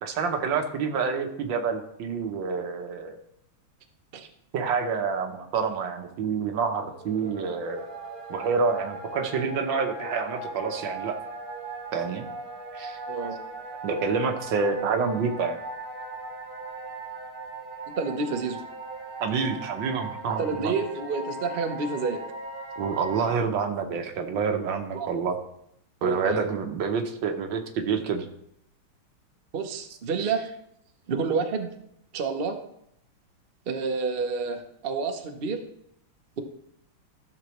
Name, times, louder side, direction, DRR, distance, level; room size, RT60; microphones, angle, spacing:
voice 1, 0.0-3.2 4.5-7.9 8.3-11.2 11.9-12.2 12.7-13.0 13.8-15.6 19.2-20.7 22.8-25.4 26.0-28.2, right 5 dB, 65° right, 5 dB, 1.5 m, -28 dB
sound 1, 6.8-23.3, right 2 dB, 30° right, 1.2 m, -39 dB
voice 2, 13.1-13.4 18.0-18.6 20.4-22.2 24.9-25.1 26.0-26.5 29.5-30.4 31.1-31.7 32.1-32.6 33.7-35.6, right 4 dB, 85° right, 4 dB, 0.5 m, -29 dB
13.0 x 6.8 x 3.1 m, 0.74 s
omnidirectional pair, 2.4 m